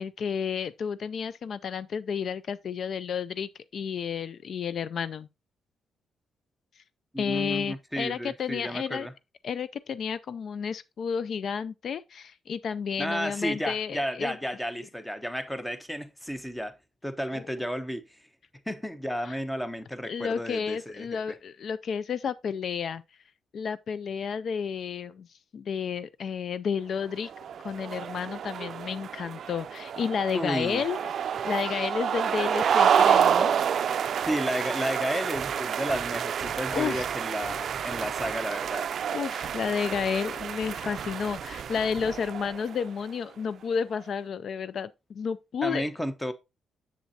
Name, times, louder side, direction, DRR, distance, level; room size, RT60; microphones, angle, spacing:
voice 1, 0.0-5.3 7.2-9.1 9.4-14.4 17.3-17.4 19.2-19.4 20.1-23.0 23.5-25.3 25.5-27.3 27.6-31.1 31.4-33.5 36.7-37.0 39.1-45.9, left 6 dB, 55° left, 0.3 m, -31 dB
voice 2, 7.1-9.1 13.0-16.8 17.0-18.2 18.7-21.2 30.3-30.8 34.3-38.9 45.6-46.3, equal, 5° left, 0.9 m, -32 dB
sound 1, 27.2-42.9, right 8 dB, 60° right, 0.4 m, -29 dB
7.2 x 7.2 x 2.8 m
cardioid pair, 105°, 0 cm